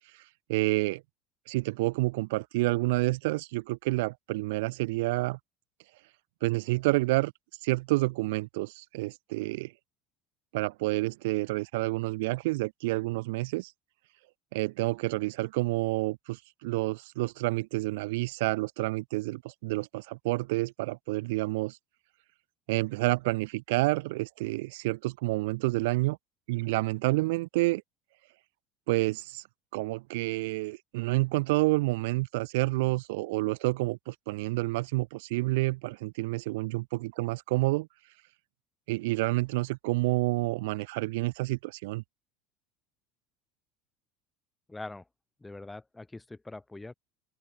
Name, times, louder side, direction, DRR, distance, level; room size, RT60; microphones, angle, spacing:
voice 1, 0.5-1.0 1.5-5.4 6.4-7.3 7.6-9.7 10.5-13.7 14.5-21.8 22.7-26.2 26.5-27.8 28.9-29.4 29.7-37.9 38.9-42.0, right 22 dB, 90° right, 1.1 m, -29 dB
voice 2, 44.7-45.1 45.4-46.9, left 2 dB, 5° left, 2.9 m, -43 dB
open air
cardioid pair, 180°, 0 cm